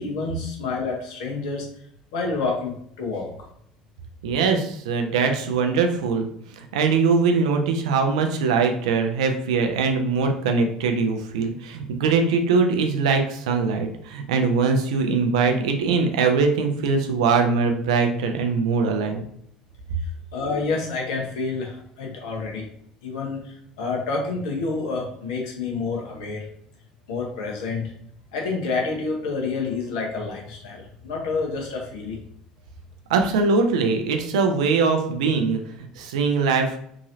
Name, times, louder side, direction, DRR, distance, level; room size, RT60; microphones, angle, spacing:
voice 1, 0.0-1.7 2.1-3.3 20.0-22.6 23.0-26.5 27.1-27.8 28.3-32.2, left 4 dB, 70° left, 0 dB, 0.9 m, -28 dB
voice 2, 4.2-6.3 6.6-19.2 33.1-36.8, right 4 dB, 75° right, 4 dB, 0.5 m, -22 dB
3.0 x 2.7 x 2.6 m, 0.68 s
hypercardioid pair, 65°, 4 cm